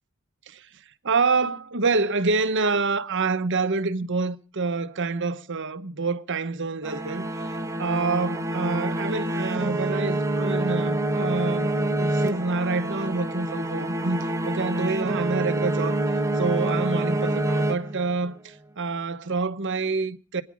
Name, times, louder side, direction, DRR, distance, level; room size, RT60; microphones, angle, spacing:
voice 1, 1.0-7.3 7.8-16.0 16.3-20.4, right 4 dB, 55° right, 1.1 m, -27 dB
sound 1, 6.8-18.3, right 1 dB, 15° right, 1.4 m, -27 dB
25.0 x 9.8 x 4.9 m
head